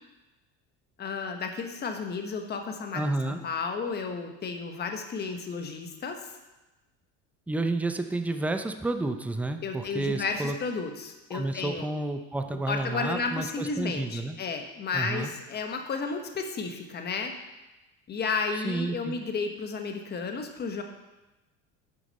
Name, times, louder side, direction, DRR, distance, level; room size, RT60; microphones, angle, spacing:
voice 1, 1.0-6.3 9.6-11.9 12.7-17.3 18.1-20.8, left 4 dB, 30° left, 4 dB, 1.2 m, -32 dB
voice 2, 2.9-3.4 7.5-10.6 11.3-14.4 14.9-15.3 18.6-19.2, right 2 dB, 5° right, 7 dB, 0.5 m, -30 dB
10.5 x 6.9 x 4.1 m, 1.1 s
cardioid pair, 135°, 33 cm